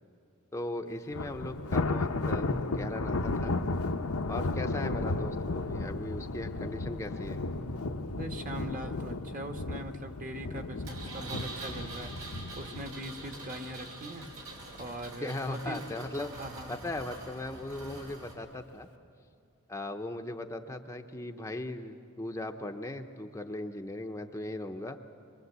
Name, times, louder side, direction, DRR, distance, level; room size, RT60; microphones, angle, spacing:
voice 1, 0.5-3.5 4.3-7.4 15.2-16.3 16.7-18.9 19.7-25.0, left 1 dB, 15° left, 4 dB, 0.7 m, -38 dB
Thunder, 1.1-14.4 14.8-15.1 15.5-15.6 16.5-17.0, left 2 dB, 80° left, 0.9 m, -34 dB
voice 2, 8.1-14.3 14.7-15.8 16.3-16.7, right 1 dB, 40° right, 6 dB, 1.4 m, -41 dB
Engine, 10.9-18.3, right 2 dB, 85° right, 5.3 m, -45 dB
26.5 x 23.0 x 8.1 m, 2.5 s
head